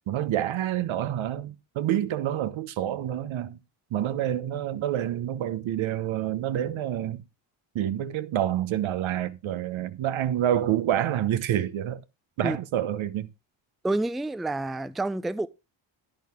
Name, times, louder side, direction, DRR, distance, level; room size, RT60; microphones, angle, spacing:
voice 1, 0.1-3.6 3.9-7.2 7.7-12.0 12.4-13.3, right 11 dB, 75° right, 1.0 m, -28 dB
voice 2, 13.8-15.5, right 2 dB, ahead, 0.4 m, -28 dB
10.5 x 9.5 x 3.6 m
cardioid pair, 80°, 48 cm